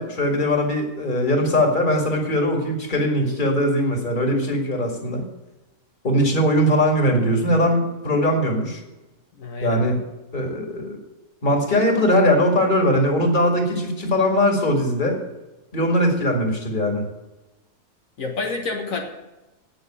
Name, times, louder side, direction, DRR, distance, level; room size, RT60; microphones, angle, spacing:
voice 1, 0.0-5.2 6.0-8.8 9.6-10.0 10.3-11.0 11.4-15.2 15.7-17.0, equal, 35° left, 2 dB, 2.3 m, -20 dB
voice 2, 9.4-9.9 18.2-19.1, left 4 dB, 75° left, 1 dB, 1.7 m, -28 dB
9.0 x 8.0 x 8.7 m, 1.0 s
omnidirectional pair, 1.4 m